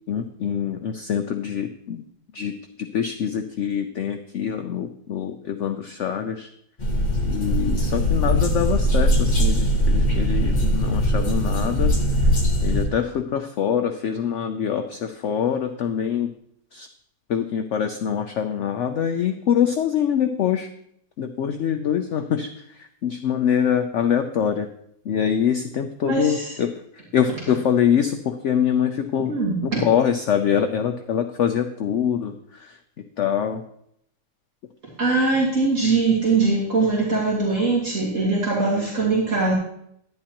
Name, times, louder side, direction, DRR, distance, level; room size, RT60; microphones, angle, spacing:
voice 1, 0.1-2.0 2.3-6.5 7.2-11.9 12.2-12.3 12.6-16.3 16.7-16.9 17.3-20.7 21.2-24.7 25.0-29.3 29.6-33.6, left 8 dB, 65° left, 6 dB, 0.8 m, -24 dB
sound 1, 6.8-12.8, equal, 30° left, 1.4 m, -20 dB
voice 2, 26.0-26.5 29.3-29.8 35.0-39.5, right 3 dB, 50° right, -5 dB, 2.3 m, -21 dB
11.0 x 9.8 x 2.9 m, 0.71 s
omnidirectional pair, 1.7 m